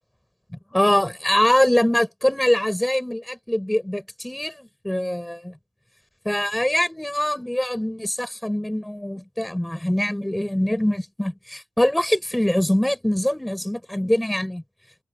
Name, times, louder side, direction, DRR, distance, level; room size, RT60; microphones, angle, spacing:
voice 1, 0.7-5.5 6.2-14.6, left 1 dB, 5° left, 5.8 m, -23 dB
wide cardioid pair, 135°, 0 cm